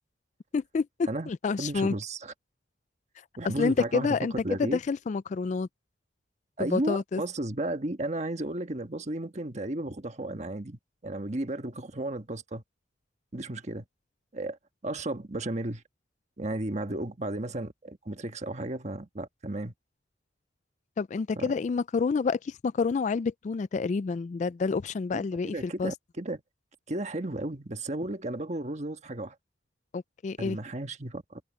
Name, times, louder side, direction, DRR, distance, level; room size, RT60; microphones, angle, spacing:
voice 1, 0.5-1.9 3.6-4.3 4.6-5.7 6.6-7.2 21.0-25.9 29.9-30.6, left 4 dB, 40° left, 0.3 m, -28 dB
voice 2, 1.6-2.3 3.4-4.8 6.6-12.6 13.3-13.8 14.3-14.6 14.8-15.8 16.4-19.7 21.3-21.5 25.1-26.4 26.9-29.3 30.4-31.4, right 1 dB, 40° right, 1.4 m, -34 dB
head